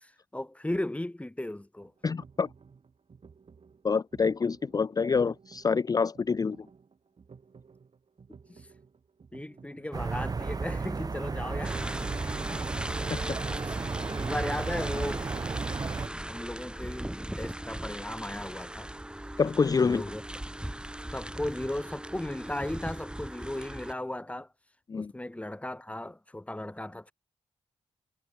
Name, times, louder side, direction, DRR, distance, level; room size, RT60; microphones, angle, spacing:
voice 1, 0.0-1.9 5.2-5.3 8.5-8.6 9.3-11.8 13.6-13.8 14.1-15.3 16.3-18.9 19.8-20.2 21.1-24.5 24.9-27.1, left 1 dB, 10° left, 1.6 m, -36 dB
sound 1, 1.8-9.9, right 5 dB, 55° right, 7.6 m, -55 dB
voice 2, 2.0-2.5 3.8-6.6 13.1-13.2 19.4-20.0 24.9-25.1, left 5 dB, 30° left, 0.4 m, -26 dB
sound 2, 9.9-16.1, right 4 dB, 35° right, 0.8 m, -33 dB
sound 3, 11.6-23.9, right 1 dB, 10° right, 4.7 m, -38 dB
wide cardioid pair, 90°, 12 cm